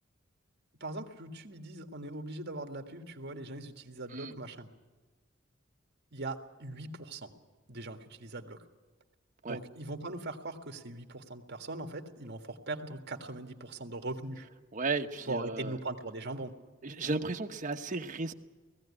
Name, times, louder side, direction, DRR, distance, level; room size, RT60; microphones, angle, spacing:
voice 1, 0.8-4.7 6.1-7.3 7.7-8.6 9.5-14.5 15.3-16.5, right 2 dB, 55° right, 5 dB, 1.8 m, -40 dB
voice 2, 14.7-15.8 16.8-18.3, right 3 dB, 40° right, 4 dB, 1.1 m, -34 dB
18.5 x 15.5 x 9.8 m, 1.3 s
head